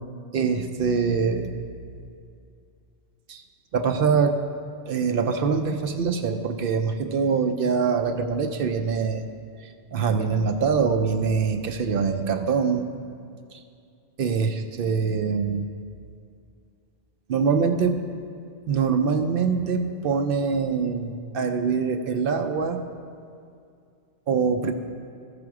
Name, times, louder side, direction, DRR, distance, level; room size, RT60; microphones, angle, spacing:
voice 1, 0.3-1.6 3.3-3.4 3.7-4.4 4.9-9.2 9.9-12.9 13.5-13.6 14.2-15.7 17.3-18.0 18.7-22.8 24.3-24.7, right 5 dB, 60° right, 7 dB, 0.7 m, -24 dB
14.5 x 5.2 x 4.8 m, 2.4 s
omnidirectional pair, 1.2 m